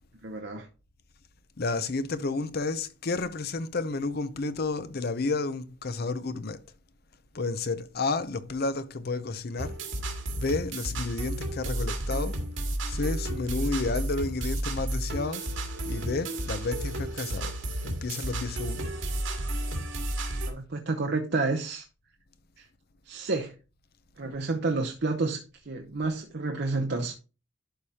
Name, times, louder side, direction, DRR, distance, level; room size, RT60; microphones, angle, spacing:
voice 1, 0.2-0.7 20.5-21.9 22.6-22.7 23.1-23.5 24.2-27.1, right 3 dB, 55° right, 0.8 m, -30 dB
voice 2, 1.6-6.6 7.3-9.8 10.3-12.4 12.9-15.5 15.8-17.5 17.8-19.0, left 3 dB, 50° left, 0.6 m, -31 dB
sound 1, 9.6-20.5, right 1 dB, 80° right, 2.1 m, -32 dB
11.5 x 4.9 x 2.8 m
head